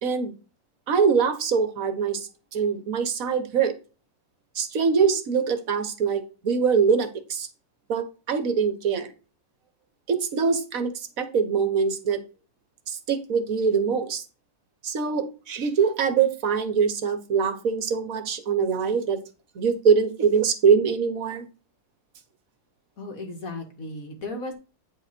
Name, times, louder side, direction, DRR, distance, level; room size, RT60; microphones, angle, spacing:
voice 1, 0.0-0.3 0.9-3.7 4.5-7.5 7.9-9.1 10.1-12.2 12.9-14.2 14.8-19.2 19.5-21.5, right 6 dB, 50° right, 9 dB, 1.3 m, -23 dB
voice 2, 23.0-24.5, left 2 dB, 45° left, 3 dB, 2.3 m, -35 dB
9.2 x 4.8 x 4.3 m, 0.33 s
omnidirectional pair, 2.0 m